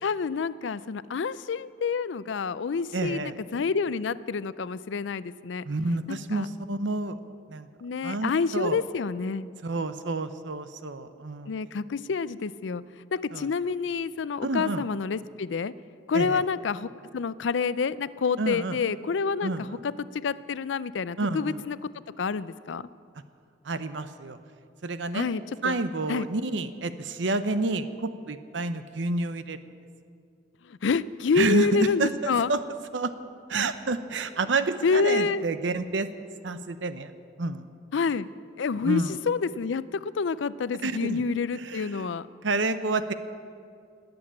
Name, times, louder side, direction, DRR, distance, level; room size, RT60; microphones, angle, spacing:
voice 1, 0.0-5.6 6.1-6.5 7.8-9.5 11.5-12.8 13.1-15.7 16.1-21.9 22.2-22.9 25.1-25.8 26.1-26.3 30.7-32.5 34.8-35.4 37.9-38.3 38.6-42.3, left 5 dB, 80° left, 17 dB, 0.5 m, -28 dB
voice 2, 2.9-3.3 5.6-7.2 7.5-7.7 8.0-8.8 9.6-11.5 13.3-13.5 14.4-14.9 16.1-16.4 18.4-18.8 19.4-19.8 21.2-21.6 23.7-24.4 24.8-25.3 25.6-29.6 31.4-32.6 32.9-33.1 33.5-36.1 36.4-37.1 37.4-37.6 38.8-39.1 40.8-41.2 41.6-42.1 42.4-43.1, right 3 dB, 80° right, 11 dB, 0.8 m, -29 dB
20.0 x 7.9 x 8.6 m, 2.3 s
head